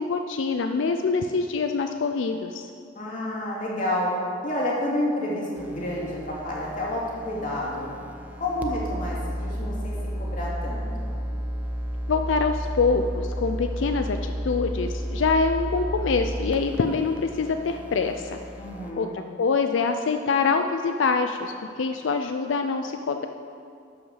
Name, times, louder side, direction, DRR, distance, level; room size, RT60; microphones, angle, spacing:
voice 1, 0.0-2.6 12.1-18.4 19.0-23.3, left 4 dB, 90° left, 6 dB, 0.4 m, -25 dB
voice 2, 2.9-4.1 4.4-7.9 8.4-11.3 18.5-19.2, left 1 dB, 45° left, -5 dB, 2.4 m, -29 dB
sound 1, 5.6-18.9, equal, 10° right, 0.6 m, -33 dB
12.0 x 5.8 x 6.4 m, 2.4 s
head